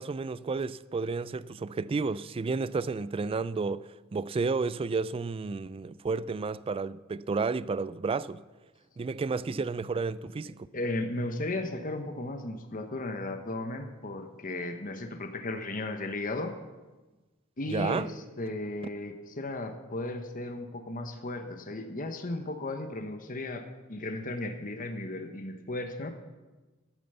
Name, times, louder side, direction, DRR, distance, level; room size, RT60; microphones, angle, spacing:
voice 1, 0.0-8.4 9.0-10.7 17.7-18.1, right 4 dB, 25° right, 0.3 m, -31 dB
voice 2, 10.7-16.6 17.6-26.1, left 2 dB, 40° left, 1.0 m, -35 dB
12.5 x 8.8 x 6.8 m
head